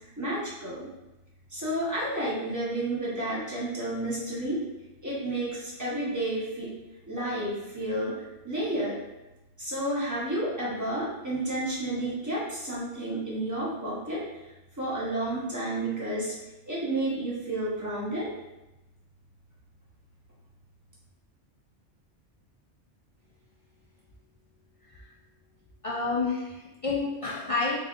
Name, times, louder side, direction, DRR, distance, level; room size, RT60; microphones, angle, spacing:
voice 1, 0.2-0.9 1.5-4.6 5.0-6.7 7.1-8.9 9.6-14.2 14.8-16.3 16.7-18.3, right 1 dB, 15° right, -7 dB, 0.9 m, -31 dB
voice 2, 25.8-27.8, left 4 dB, 60° left, -5 dB, 0.3 m, -29 dB
3.5 x 3.4 x 2.4 m, 1.0 s
omnidirectional pair, 1.2 m